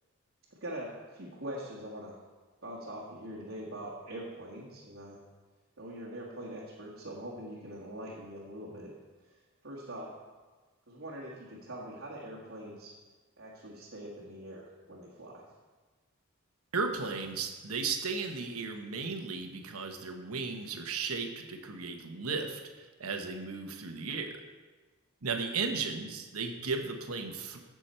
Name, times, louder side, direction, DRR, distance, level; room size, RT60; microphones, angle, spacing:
voice 1, 0.5-2.2 2.6-5.2 5.8-8.9 9.2-10.1 10.9-12.9 13.4-15.4, right 1 dB, 60° right, -5 dB, 1.7 m, -43 dB
voice 2, 16.7-24.4 25.2-27.6, right 4 dB, 90° right, 4 dB, 1.2 m, -35 dB
15.5 x 6.2 x 4.4 m, 1.3 s
head